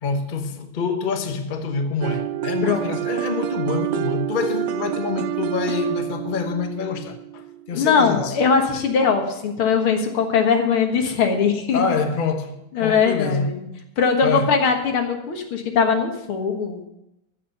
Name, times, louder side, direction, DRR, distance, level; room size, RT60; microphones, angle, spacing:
voice 1, 0.0-8.4 11.7-12.5 12.8-13.6 14.2-14.5, left 4 dB, 40° left, 0.7 m, -26 dB
sound 1, 2.0-7.8, right 12 dB, 75° right, 1.0 m, -28 dB
voice 2, 2.6-3.2 7.7-11.8 12.7-13.7 14.0-16.9, left 6 dB, 75° left, 2.4 m, -21 dB
14.5 x 6.2 x 6.9 m
omnidirectional pair, 2.4 m